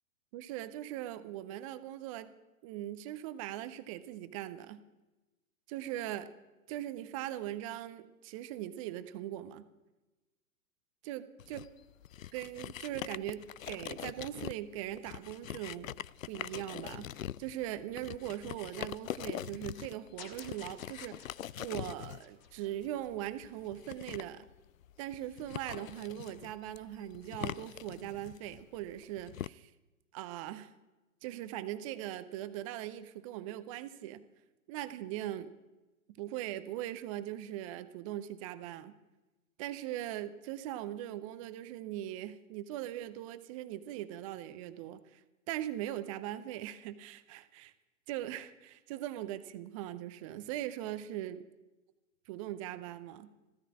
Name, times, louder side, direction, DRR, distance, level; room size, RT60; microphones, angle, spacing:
voice 1, 0.3-2.3 2.6-4.8 5.7-6.3 6.7-9.7 11.0-11.6 12.3-15.9 16.3-21.3 21.6-24.5 25.0-29.7 30.1-30.7 31.2-34.2 34.7-35.5 36.1-39.0 39.6-45.2 45.5-47.7 48.1-51.4 52.3-53.3, right 13 dB, 25° right, 13 dB, 0.7 m, -40 dB
sound 1, 11.4-29.5, left 11 dB, 70° left, 0.5 m, -43 dB
sound 2, 20.2-23.5, left 6 dB, 40° left, 2.4 m, -54 dB
15.0 x 13.0 x 6.0 m, 1.1 s
figure-of-eight pair, 115°, 42 cm